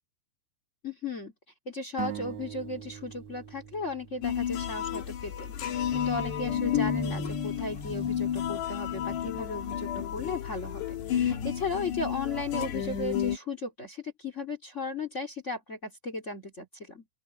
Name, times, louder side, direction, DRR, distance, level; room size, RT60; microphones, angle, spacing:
voice 1, 0.8-1.3 1.6-17.0, left 3 dB, 35° left, 1.1 m, -36 dB
sound 1, 2.0-5.6, right 11 dB, 80° right, 1.6 m, -42 dB
sound 2, 4.2-13.4, left 9 dB, 60° left, 4.2 m, -31 dB
open air
omnidirectional pair, 6.0 m